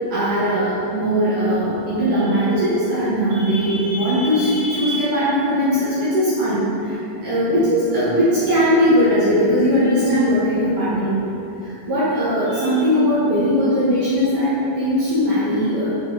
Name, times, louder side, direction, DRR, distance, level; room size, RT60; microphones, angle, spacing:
voice 1, 0.1-6.6 7.2-11.3 11.9-15.9, equal, 65° right, -11 dB, 2.1 m, -19 dB
8.5 x 5.2 x 4.8 m, 2.8 s
omnidirectional pair, 5.8 m